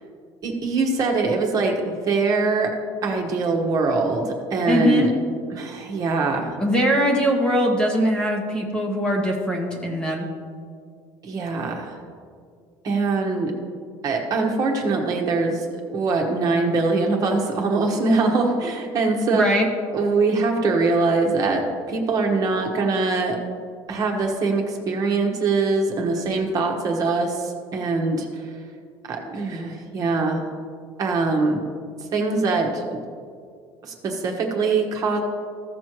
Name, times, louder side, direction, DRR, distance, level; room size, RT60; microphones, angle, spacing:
voice 1, 0.4-2.7 3.0-5.1 5.5-6.5 11.2-11.9 12.8-13.5 14.0-19.4 19.9-23.4 23.9-28.5 29.1-30.4 31.0-31.6 32.1-32.8 33.8-35.2, right 3 dB, 35° right, 1 dB, 1.2 m, -23 dB
voice 2, 4.7-5.1 6.6-10.3 19.3-19.7, equal, 10° left, 0 dB, 1.0 m, -21 dB
15.0 x 6.2 x 3.0 m, 2.1 s
cardioid pair, 165°, 10 cm